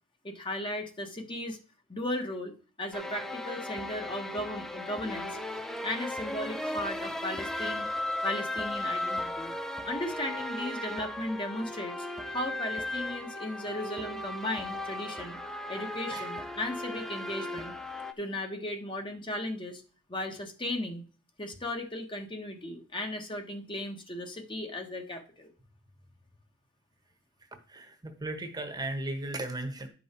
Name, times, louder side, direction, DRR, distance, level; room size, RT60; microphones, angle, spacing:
voice 1, 0.2-1.6 1.9-2.5 2.8-5.4 5.8-7.9 8.2-9.5 9.8-11.9 12.3-15.4 15.7-17.7 18.2-19.8 20.1-21.0 21.4-25.5, left 1 dB, 25° left, 4 dB, 1.3 m, -36 dB
sound 1, 2.9-18.1, left 1 dB, ahead, 0.5 m, -36 dB
voice 2, 27.7-29.9, right 2 dB, 20° right, 6 dB, 1.2 m, -36 dB
10.5 x 5.5 x 4.4 m, 0.39 s
head